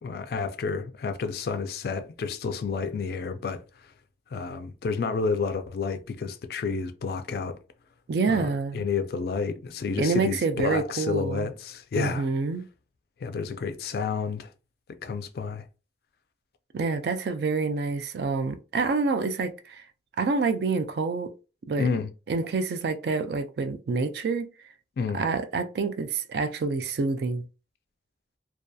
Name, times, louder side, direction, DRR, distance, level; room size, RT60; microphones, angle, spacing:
voice 1, 0.0-3.6 4.3-7.6 8.2-12.3 13.2-14.5 15.0-15.7 21.8-22.1 25.0-25.2, left 5 dB, 55° left, 0.3 m, -30 dB
voice 2, 8.1-8.8 10.0-11.5 11.9-12.6 16.7-19.8 20.2-21.3 21.7-21.9 22.3-24.5 25.1-27.4, right 4 dB, 60° right, 0.3 m, -27 dB
2.6 x 2.3 x 2.2 m
head